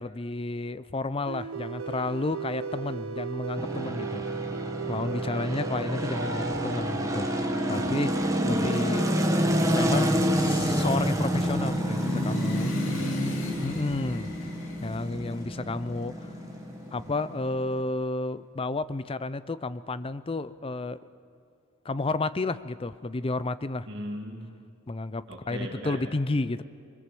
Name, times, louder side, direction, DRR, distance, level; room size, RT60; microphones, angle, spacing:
voice 1, 0.0-4.2 4.9-9.1 9.7-12.7 13.6-14.5 14.8-16.4 16.9-21.0 21.8-23.9 24.9-26.6, left 2 dB, 25° left, 15 dB, 0.5 m, -31 dB
sound 1, 1.3-11.6, right 4 dB, 85° right, 1.1 m, -37 dB
sound 2, 3.6-17.8, equal, 15° right, 1.5 m, -28 dB
sound 3, 9.8-17.6, left 2 dB, 65° left, 2.7 m, -36 dB
voice 2, 12.9-13.6 23.9-24.5 25.3-26.0, equal, 60° right, 1 dB, 2.4 m, -39 dB
24.0 x 21.5 x 7.7 m, 2.3 s
head